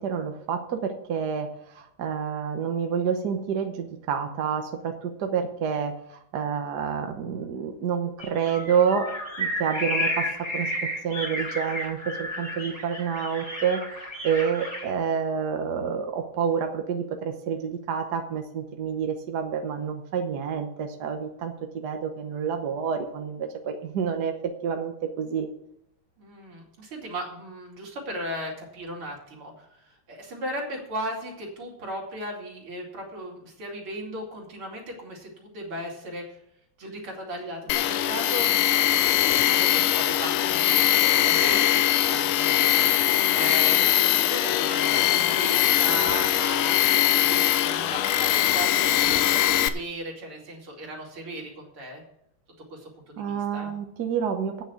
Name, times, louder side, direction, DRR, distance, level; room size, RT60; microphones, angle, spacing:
voice 1, 0.0-9.1 9.4-10.3 10.5-13.8 14.2-25.5 53.2-54.6, right 7 dB, 55° right, 5 dB, 1.4 m, -28 dB
sound 1, 8.2-14.9, left 1 dB, 5° left, 3.2 m, -32 dB
voice 2, 26.2-36.4 36.8-38.5 39.5-41.6 42.1-52.0 52.7-53.7, equal, 75° right, -1 dB, 3.5 m, -36 dB
Tools, 37.7-49.7, left 12 dB, 90° left, 1.5 m, -21 dB
9.1 x 6.4 x 8.1 m, 0.75 s
omnidirectional pair, 2.4 m